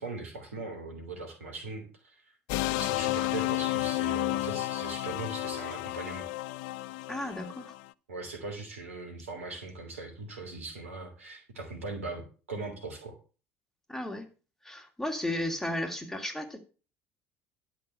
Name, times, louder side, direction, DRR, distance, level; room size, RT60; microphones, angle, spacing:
voice 1, 0.0-2.3 2.8-6.2 8.1-13.2, right 3 dB, 80° right, 4 dB, 3.0 m, -40 dB
sound 1, 2.5-7.8, left 19 dB, 60° left, 0.5 m, -32 dB
voice 2, 7.1-7.7 13.9-14.3 14.6-16.6, left 1 dB, 5° left, 4 dB, 2.7 m, -34 dB
11.5 x 6.0 x 6.7 m, 0.35 s
figure-of-eight pair, 60°, 7 cm